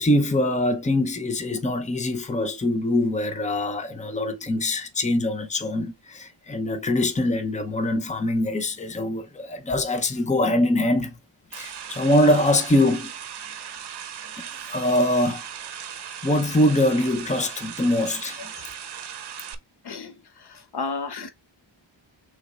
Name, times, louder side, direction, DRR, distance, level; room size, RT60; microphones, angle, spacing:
voice 1, 0.0-11.1 11.5-13.1 14.4-15.4 16.2-18.5, left 1 dB, 15° left, 0.7 m, -23 dB
sound 1, 11.5-19.5, right 8 dB, 60° right, 0.8 m, -38 dB
voice 2, 19.8-21.3, left 4 dB, 60° left, 0.8 m, -33 dB
6.2 x 3.4 x 2.4 m
wide cardioid pair, 145°, 45 cm